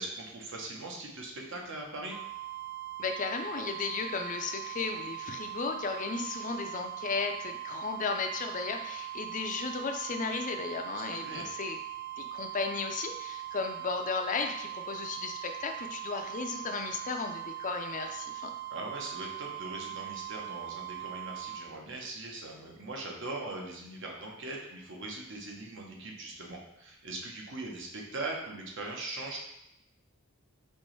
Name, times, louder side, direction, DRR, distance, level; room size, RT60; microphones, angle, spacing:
voice 1, 0.0-2.2 11.2-11.5 18.7-29.4, right 2 dB, 60° right, 0 dB, 0.8 m, -40 dB
sound 1, 2.1-21.6, right 15 dB, 10° right, 0.7 m, -41 dB
voice 2, 3.0-11.8 12.2-18.5, left 4 dB, 35° left, 5 dB, 0.4 m, -35 dB
4.4 x 3.0 x 3.1 m, 0.82 s
head